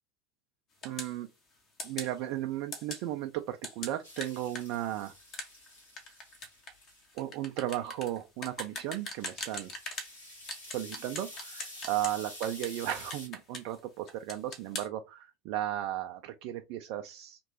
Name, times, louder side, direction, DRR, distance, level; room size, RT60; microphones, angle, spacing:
sound 1, 0.8-1.2 1.8-2.1 2.7-3.0 3.6-10.1 10.5-12.2 12.4-13.8 14.1-14.9, left 2 dB, 40° left, 1.0 m, -41 dB
voice 1, 0.8-1.3 1.8-5.1 7.1-9.7 10.7-17.4, right 13 dB, 55° right, 0.3 m, -35 dB
sound 2, 4.0-7.0 8.8-13.3, left 1 dB, 80° left, 1.4 m, -49 dB
2.9 x 2.5 x 2.7 m
figure-of-eight pair, 80°, 0 cm